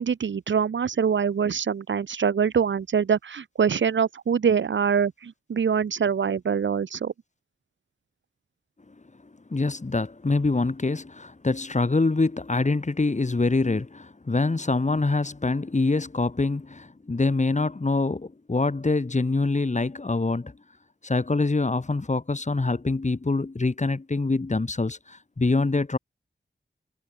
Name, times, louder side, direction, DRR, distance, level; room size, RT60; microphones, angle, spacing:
voice 1, 0.0-7.1, right 7 dB, 90° right, 1.4 m, -24 dB
voice 2, 9.5-20.5 21.0-26.0, left 3 dB, 40° left, 3.9 m, -25 dB
cardioid pair, 60°, 19 cm